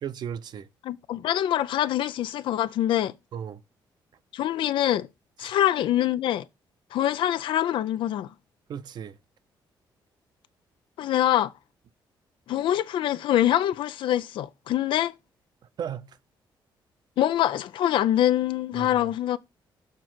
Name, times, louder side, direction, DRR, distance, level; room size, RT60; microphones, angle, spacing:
voice 1, 0.0-0.7 3.3-3.6 5.4-5.5 8.7-9.1 15.8-16.2 18.8-19.1, right 8 dB, 55° right, 0.6 m, -35 dB
voice 2, 0.8-3.1 4.3-5.1 5.4-6.5 6.9-8.3 11.0-11.5 12.5-15.1 17.2-19.4, left 12 dB, 75° left, 0.5 m, -24 dB
6.7 x 3.6 x 6.0 m
cardioid pair, 135°, 9 cm